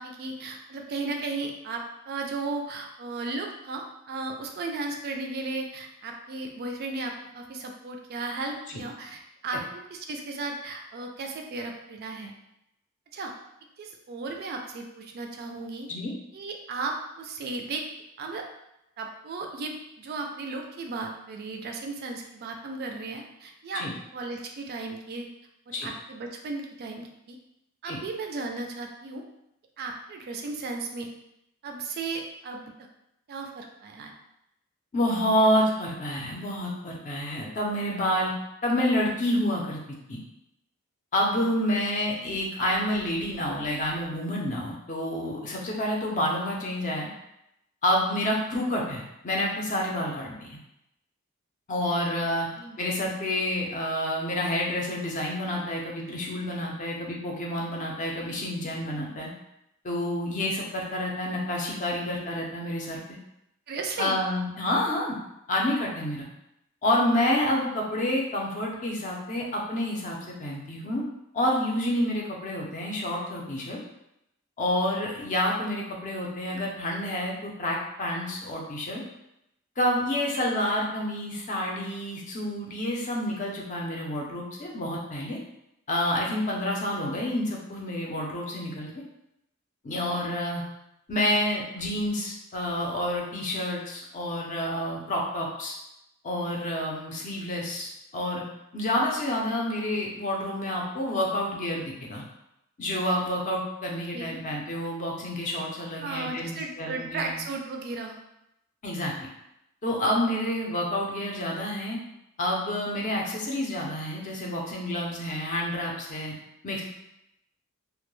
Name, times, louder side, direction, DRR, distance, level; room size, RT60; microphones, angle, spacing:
voice 1, 0.0-12.3 13.1-13.3 13.8-15.9 16.3-17.8 18.2-18.4 19.0-23.8 24.1-25.3 25.7-27.4 27.8-29.2 29.8-31.1 31.6-32.7 33.3-34.1 52.6-52.8 63.7-64.2 104.1-104.3 106.0-108.2, right 3 dB, 50° right, 3 dB, 0.3 m, -35 dB
voice 2, 34.9-38.3 38.6-39.8 40.1-40.2 41.1-47.1 47.8-50.6 51.7-52.5 52.8-59.3 59.8-63.0 64.0-65.2 65.5-66.3 66.8-71.1 71.3-73.8 74.6-79.0 79.8-85.4 85.9-88.9 89.8-90.6 91.1-95.7 96.2-98.4 98.7-102.2 102.8-107.4 108.8-109.3 109.8-112.0 112.4-116.3 116.6-116.8, left 1 dB, 35° left, -1 dB, 0.5 m, -28 dB
2.2 x 2.1 x 3.0 m, 0.83 s
head